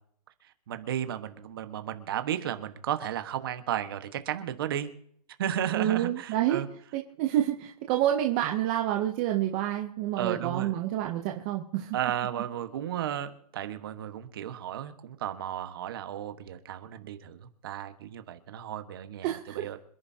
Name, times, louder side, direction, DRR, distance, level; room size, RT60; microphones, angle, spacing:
voice 1, 0.7-4.9 5.4-6.7 10.2-10.8 11.9-19.8, right 10 dB, 35° right, 9 dB, 1.3 m, -34 dB
voice 2, 5.7-6.6 6.9-12.0 19.2-19.7, right 12 dB, 15° right, 2 dB, 0.6 m, -28 dB
26.5 x 11.0 x 2.8 m, 0.64 s
hypercardioid pair, 175°, 20 cm